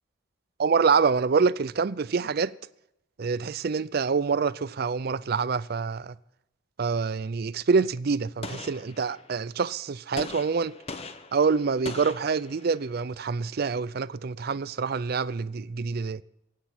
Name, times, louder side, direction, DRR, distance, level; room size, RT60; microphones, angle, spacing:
voice 1, 0.6-2.5 3.2-6.1 6.8-10.8 11.3-16.2, right 5 dB, 55° right, 0.5 m, -26 dB
Gunshot gunfire, 8.4-9.5 10.2-12.9, left 3 dB, 30° left, 1.0 m, -41 dB
23.5 x 8.4 x 5.9 m
head